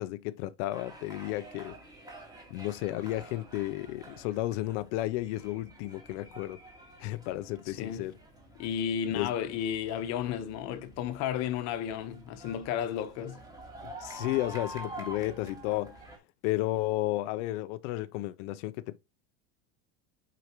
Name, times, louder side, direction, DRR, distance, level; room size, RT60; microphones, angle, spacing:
voice 1, 0.0-1.7 2.5-6.6 7.0-8.2 9.1-9.3 14.0-16.0 16.4-19.0, left 16 dB, 60° left, 0.5 m, -33 dB
sound 1, 0.7-16.2, right 1 dB, 10° right, 1.8 m, -48 dB
voice 2, 7.7-8.1 8.6-13.4, left 9 dB, 40° left, 1.0 m, -33 dB
7.9 x 4.8 x 2.9 m
cardioid pair, 170°, 41 cm